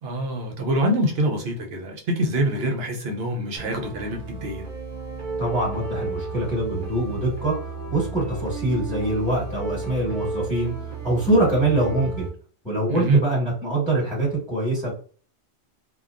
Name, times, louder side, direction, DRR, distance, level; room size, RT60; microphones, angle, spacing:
voice 1, 0.0-4.6 12.9-13.2, right 1 dB, 65° right, 2 dB, 0.9 m, -25 dB
sound 1, 3.6-12.3, right 4 dB, 45° right, 1.1 m, -33 dB
voice 2, 5.4-10.7 11.0-12.3 12.6-14.9, right 1 dB, ahead, -8 dB, 1.3 m, -24 dB
2.7 x 2.2 x 2.4 m, 0.43 s
omnidirectional pair, 1.1 m